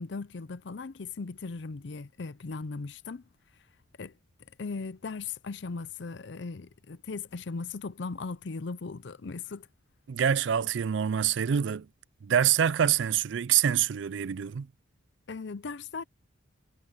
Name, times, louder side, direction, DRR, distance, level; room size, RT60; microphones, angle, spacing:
voice 1, 0.0-3.2 4.0-4.1 4.6-9.7 15.3-16.0, left 4 dB, 60° left, 0.5 m, -38 dB
voice 2, 10.1-11.9 12.2-14.7, right 9 dB, 65° right, 0.4 m, -26 dB
head